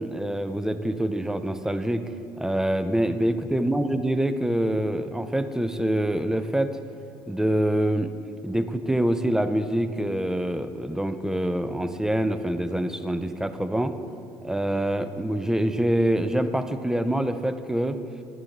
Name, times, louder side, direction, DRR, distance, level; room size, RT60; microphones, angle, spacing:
voice 1, 0.0-6.8 7.3-8.1 8.4-13.9 14.4-18.0, right 1 dB, 5° right, 10 dB, 0.4 m, -25 dB
10.5 x 4.7 x 3.3 m, 2.5 s
supercardioid pair, 75°, 11 cm